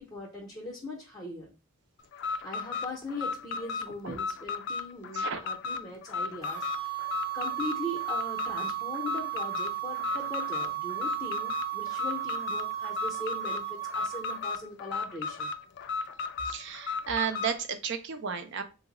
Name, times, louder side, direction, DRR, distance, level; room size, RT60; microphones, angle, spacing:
voice 1, 0.0-1.5 2.4-15.5, left 1 dB, 10° left, -3 dB, 0.6 m, -40 dB
Alarm, 2.1-17.6, left 4 dB, 50° left, 0.3 m, -35 dB
sound 1, 6.4-14.6, right 15 dB, 15° right, 0.7 m, -35 dB
voice 2, 16.4-18.6, right 7 dB, 50° right, 9 dB, 0.5 m, -33 dB
3.6 x 2.0 x 3.6 m, 0.30 s
head